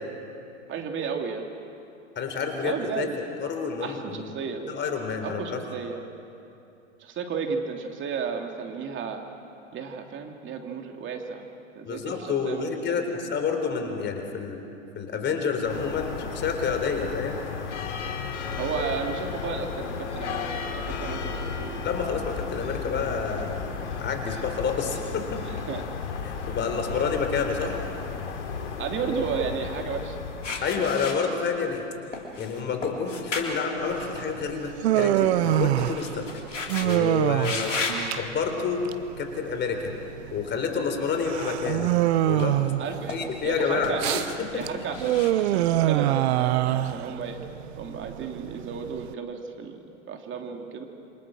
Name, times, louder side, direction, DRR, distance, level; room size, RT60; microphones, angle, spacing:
voice 1, 0.7-1.4 2.3-3.2 3.8-4.6 5.2-6.0 7.0-9.3 9.7-11.4 11.7-13.4 18.6-21.8 25.5-26.0 26.9-27.1 28.8-30.2 30.5-30.9 37.6-37.7 42.8-44.1 44.5-47.4 47.8-49.8 50.1-50.9, right 6 dB, 30° right, 3 dB, 3.1 m, -33 dB
voice 2, 2.2-3.1 3.4-5.6 11.8-14.6 15.0-17.4 21.8-23.6 24.0-25.4 26.2-27.8 30.6-31.8 32.4-36.3 36.8-38.8 39.2-39.9 40.3-41.9 42.2-42.6 43.1-44.2 44.5-44.6, left 5 dB, 30° left, 5 dB, 3.8 m, -29 dB
sound 1, 15.6-31.1, left 5 dB, 70° left, 3.1 m, -34 dB
sound 2, 30.4-31.8 32.1-34.7 35.0-37.0 37.4-38.1 38.7-39.0 41.3-42.1 42.4-43.5 43.8-46.0, left 3 dB, 90° left, 3.4 m, -35 dB
Human voice, 33.9-49.1, right 14 dB, 60° right, 1.1 m, -26 dB
28.0 x 24.5 x 6.4 m, 2.8 s
hypercardioid pair, 100°, 36 cm